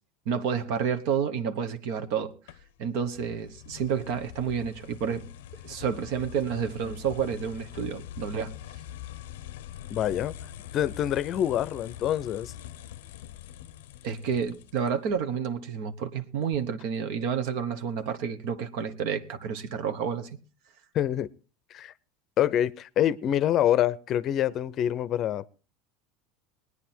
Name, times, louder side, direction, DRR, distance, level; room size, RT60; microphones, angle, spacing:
voice 1, 0.3-2.3 2.8-5.3 5.6-8.5 14.0-20.3, right 7 dB, 70° right, 1.2 m, -30 dB
sound 1, 2.5-15.2, left 11 dB, 90° left, 0.6 m, -44 dB
voice 2, 9.9-10.3 10.7-12.5 20.9-21.3 21.7-21.9 22.4-25.5, left 11 dB, 40° left, 0.6 m, -26 dB
19.5 x 9.8 x 4.4 m
supercardioid pair, 125°, 0 cm